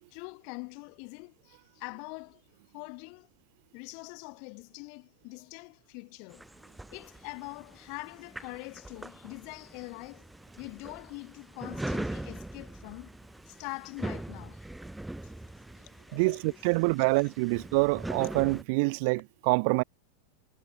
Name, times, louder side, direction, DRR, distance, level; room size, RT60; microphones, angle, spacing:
voice 1, 0.1-2.4 2.7-3.3 3.7-6.4 6.9-10.3 10.6-13.2 13.4-14.6 15.1-15.3 15.8-17.6, left 39 dB, 45° left, 1.6 m, -44 dB
sound 1, 6.3-18.6, right 1 dB, 5° right, 2.4 m, -41 dB
voice 2, 16.1-19.8, right 31 dB, 45° right, 0.5 m, -26 dB
figure-of-eight pair, 90°, 0 cm